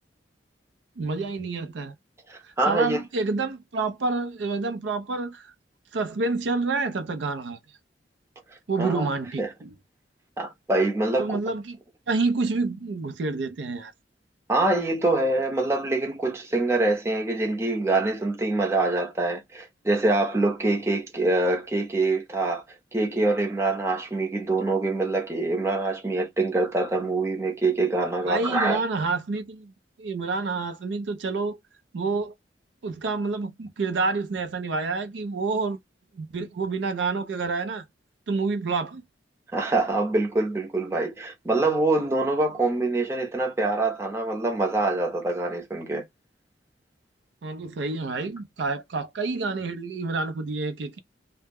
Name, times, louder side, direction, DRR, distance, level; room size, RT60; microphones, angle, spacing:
voice 1, 1.0-1.9 2.4-5.5 5.9-7.6 8.7-9.7 11.2-11.8 12.1-13.9 28.3-29.7 30.0-31.6 31.9-32.3 32.8-35.8 36.1-37.8 38.3-39.0 47.4-51.0, right 3 dB, 85° right, 0.5 m, -28 dB
voice 2, 2.3-3.0 8.8-9.1 9.4-9.5 10.4-11.4 14.5-22.6 22.9-28.8 39.5-46.0, right 2 dB, 15° right, 0.6 m, -25 dB
2.1 x 2.0 x 3.4 m
head